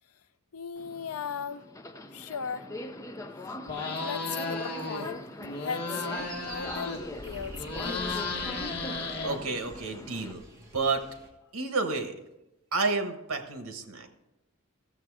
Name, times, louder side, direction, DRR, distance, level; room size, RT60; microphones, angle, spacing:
voice 1, 0.5-1.7 2.1-2.7 3.9-5.3 5.6-6.1 6.4-8.3, left 6 dB, 85° left, 0.5 m, -37 dB
Subway metro underground, 0.8-10.3, left 1 dB, 15° left, 0.5 m, -42 dB
sound 1, 3.6-5.1 5.4-7.2 7.5-9.8, left 3 dB, 50° left, 1.6 m, -34 dB
sound 2, 6.2-11.3, right 1 dB, 15° right, 1.5 m, -47 dB
voice 2, 9.2-10.4 10.7-11.0 11.5-12.2 12.7-14.1, right 3 dB, 85° right, 1.3 m, -30 dB
13.5 x 7.2 x 4.8 m
head